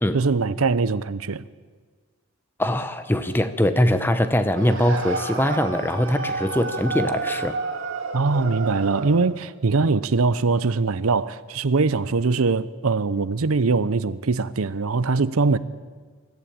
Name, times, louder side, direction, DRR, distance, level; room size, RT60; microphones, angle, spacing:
voice 1, 0.1-1.4 8.1-15.6, right 4 dB, 75° right, 0.7 m, -22 dB
voice 2, 2.6-7.6, left 1 dB, 10° left, 0.8 m, -22 dB
sound 1, 4.5-9.3, right 3 dB, 60° right, 2.2 m, -30 dB
22.0 x 14.0 x 8.8 m
head